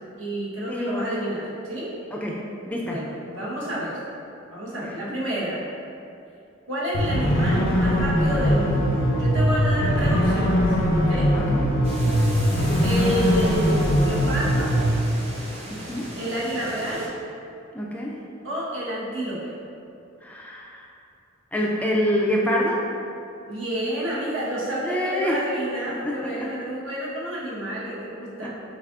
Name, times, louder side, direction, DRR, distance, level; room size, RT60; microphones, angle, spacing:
voice 1, 0.2-1.9 2.9-4.0 4.5-5.6 6.7-11.4 12.8-14.8 16.2-17.1 18.4-19.6 23.5-28.5, right 1 dB, 70° right, -7 dB, 1.1 m, -29 dB
voice 2, 0.7-1.1 2.1-3.0 4.8-5.1 11.3-11.8 12.1-12.3 15.7-16.1 17.7-18.2 20.2-20.9 21.5-22.9 24.8-25.4 26.0-26.5 28.4-28.5, equal, 5° left, -3 dB, 0.3 m, -27 dB
sound 1, 6.9-14.9, equal, 80° left, 0.6 m, -21 dB
sound 2, 11.8-17.1, right 1 dB, 35° right, 0.8 m, -37 dB
5.6 x 3.5 x 2.4 m, 2.6 s
head